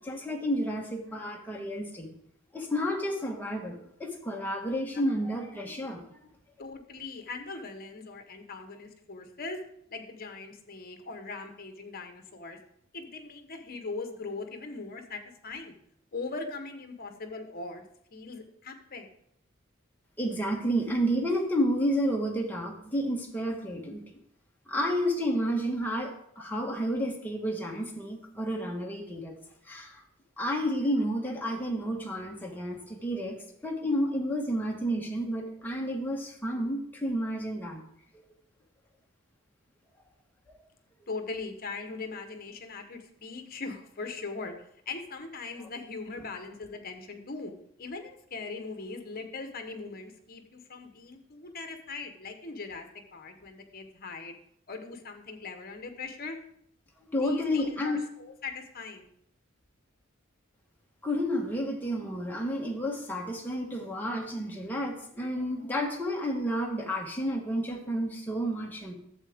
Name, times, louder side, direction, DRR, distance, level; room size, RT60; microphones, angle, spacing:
voice 1, 0.0-2.1 2.5-6.0 20.2-24.0 24.7-29.3 29.7-30.0 30.4-33.4 33.6-37.8 40.5-40.6 57.1-58.0 61.0-68.9, equal, 10° left, 0 dB, 1.3 m, -31 dB
voice 2, 6.6-9.6 9.9-12.6 12.9-15.8 16.1-17.8 18.1-19.1 41.1-44.5 44.9-47.5 47.8-52.9 53.1-54.4 54.7-56.4 57.2-59.0, left 3 dB, 45° left, 6 dB, 1.1 m, -40 dB
11.5 x 7.6 x 3.5 m, 0.71 s
head